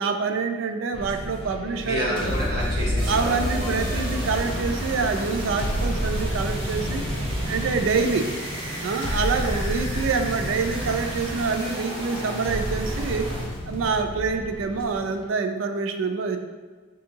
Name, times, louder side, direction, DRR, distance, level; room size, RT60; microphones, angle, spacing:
voice 1, 0.0-2.3 3.1-7.0 7.4-8.3 8.8-13.3 13.7-16.4, right 4 dB, 85° right, 7 dB, 0.3 m, -26 dB
sound 1, 0.9-15.2, equal, 25° left, 0.3 m, -30 dB
voice 2, 1.8-4.1, equal, 50° right, -6 dB, 1.1 m, -30 dB
sound 2, 3.0-13.5, right 1 dB, 25° right, 1.0 m, -34 dB
4.2 x 2.7 x 2.7 m, 1.4 s
head